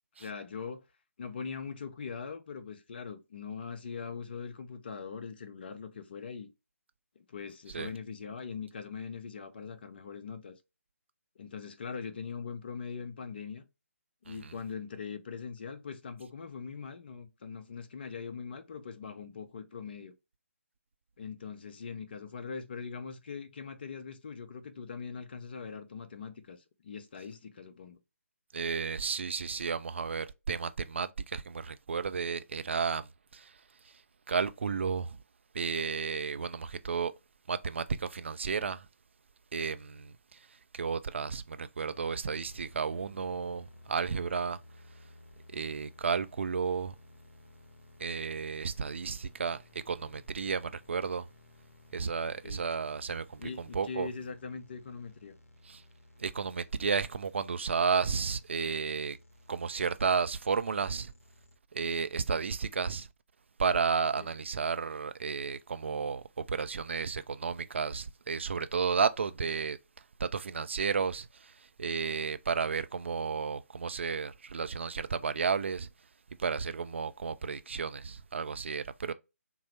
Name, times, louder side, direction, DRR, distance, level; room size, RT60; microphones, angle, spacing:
voice 1, 0.2-0.8 1.2-6.5 7.2-10.6 11.4-13.6 14.2-20.1 21.2-28.0 52.4-52.6 53.4-55.3 64.1-64.3, left 5 dB, 40° left, 0.7 m, -41 dB
voice 2, 28.5-33.5 34.3-35.2 35.5-37.1 37.5-38.9 39.5-40.4 40.7-44.6 45.5-46.9 48.0-51.3 51.9-54.1 55.7-55.8 56.2-59.2 59.5-61.1 61.7-63.1 63.6-69.8 70.2-75.9 76.4-79.1, right 5 dB, 50° right, 0.3 m, -32 dB
sound 1, 41.8-61.6, left 1 dB, 60° left, 1.2 m, -57 dB
5.6 x 2.0 x 3.1 m
figure-of-eight pair, 145°, 8 cm